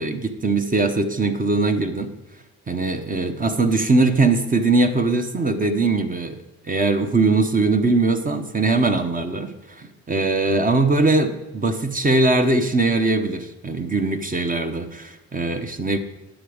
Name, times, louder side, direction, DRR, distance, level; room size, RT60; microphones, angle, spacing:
voice 1, 0.0-2.1 2.7-6.4 6.6-16.0, right 3 dB, 30° right, 7 dB, 0.9 m, -21 dB
10.0 x 7.0 x 5.0 m, 1.0 s
cardioid pair, 90°, 30 cm